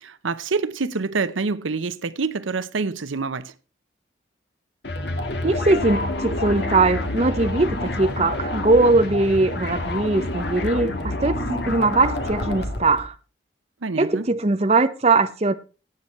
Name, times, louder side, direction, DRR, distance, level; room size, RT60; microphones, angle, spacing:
voice 1, 0.0-3.5 13.8-14.3, right 4 dB, 90° right, 0.7 m, -26 dB
sound 1, 4.8-13.1, left 2 dB, 60° left, 1.7 m, -28 dB
voice 2, 5.4-13.1 14.0-15.5, right 3 dB, 35° right, 0.7 m, -20 dB
17.0 x 7.9 x 4.3 m
head